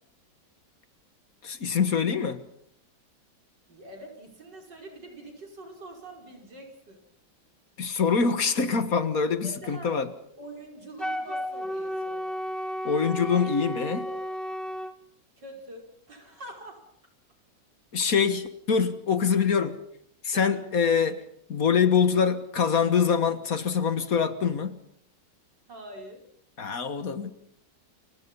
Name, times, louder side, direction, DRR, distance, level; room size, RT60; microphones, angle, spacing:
voice 1, 1.4-2.4 7.8-10.1 12.8-14.1 17.9-19.8 20.2-21.2 21.5-24.8 26.6-27.3, left 6 dB, 55° left, 11 dB, 1.8 m, -24 dB
voice 2, 3.7-7.0 9.4-10.0 10.4-12.3 13.3-13.5 13.8-14.2 15.4-16.8 20.3-20.6 25.7-26.2, right 1 dB, 75° right, 2 dB, 6.1 m, -44 dB
Wind instrument woodwind instrument, 11.0-14.9, equal, ahead, 2.4 m, -33 dB
29.0 x 24.0 x 5.6 m, 0.68 s
omnidirectional pair, 1.9 m